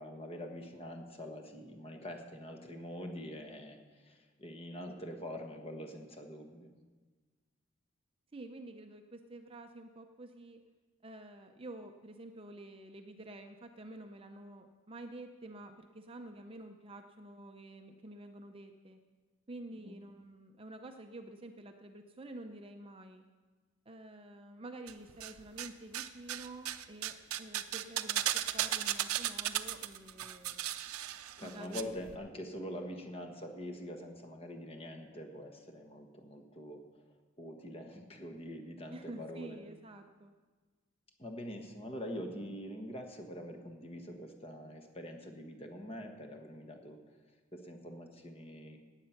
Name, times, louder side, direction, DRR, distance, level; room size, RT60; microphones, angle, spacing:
voice 1, 0.0-6.7 19.8-19.9 31.4-39.6 41.2-47.0 47.5-48.8, equal, 25° left, 4 dB, 1.4 m, -45 dB
voice 2, 8.3-10.6 11.0-19.0 19.5-23.2 23.9-30.7 31.4-31.9 32.8-32.9 38.9-40.3, right 1 dB, 25° right, 5 dB, 0.6 m, -49 dB
sound 1, 24.9-25.7 25.9-32.2, right 12 dB, 90° right, 0.6 m, -36 dB
17.0 x 9.0 x 5.8 m, 1.4 s
head